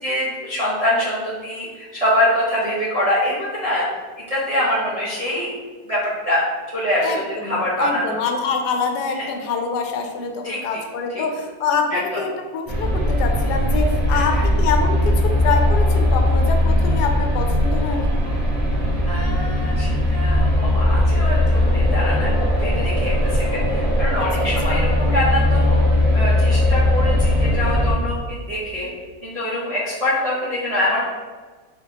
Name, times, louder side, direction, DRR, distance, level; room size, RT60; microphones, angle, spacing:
voice 1, 0.0-4.0 4.3-5.5 5.9-6.4 6.7-8.1 10.4-10.8 11.1-11.2 11.9-12.0 14.1-14.4 19.1-28.9 29.2-31.0, left 1 dB, 40° right, -8 dB, 0.5 m, -24 dB
voice 2, 7.0-18.1 24.1-24.8, left 5 dB, 85° left, 4 dB, 1.2 m, -25 dB
sound 1, 12.7-27.9, left 1 dB, 10° left, 0.6 m, -19 dB
3.7 x 3.6 x 2.8 m, 1.4 s
omnidirectional pair, 1.7 m